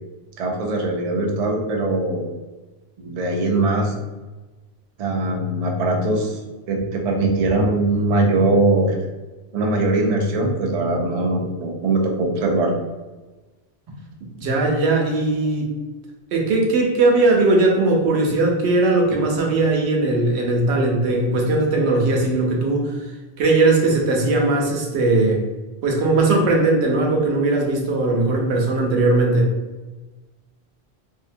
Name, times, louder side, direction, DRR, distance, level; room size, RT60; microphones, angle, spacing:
voice 1, 0.4-2.3 3.0-3.9 5.0-6.4 6.7-9.0 9.5-12.7, right 2 dB, 55° right, 0 dB, 0.4 m, -21 dB
voice 2, 14.4-15.7 16.3-22.9 23.4-25.4 25.8-29.5, right 2 dB, 85° right, 0 dB, 0.9 m, -19 dB
2.6 x 2.1 x 2.6 m, 1.2 s
omnidirectional pair, 1.1 m